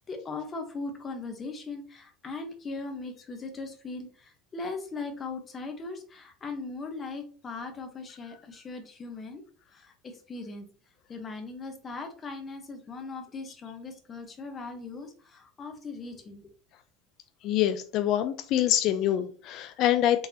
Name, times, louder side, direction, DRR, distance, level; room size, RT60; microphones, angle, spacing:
voice 1, 0.0-9.4 9.7-10.7 11.1-16.5, left 3 dB, 25° left, 1.0 m, -39 dB
voice 2, 17.4-20.3, left 12 dB, 50° left, 0.4 m, -25 dB
3.9 x 3.6 x 2.8 m
supercardioid pair, 120°, 0 cm